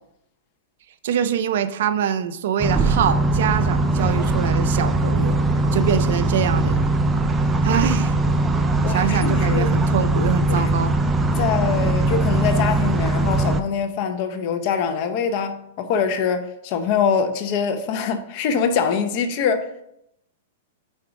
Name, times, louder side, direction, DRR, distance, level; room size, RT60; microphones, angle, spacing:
voice 1, 1.0-5.4 5.7-6.8 7.6-8.2 8.9-10.9, right 8 dB, 65° right, 0.5 m, -24 dB
sound 1, 2.6-13.6, right 2 dB, 10° right, 0.4 m, -20 dB
voice 2, 8.8-9.7 10.5-10.7 11.4-19.8, left 6 dB, 45° left, 0.7 m, -24 dB
5.3 x 4.5 x 4.9 m
supercardioid pair, 150°, 0 cm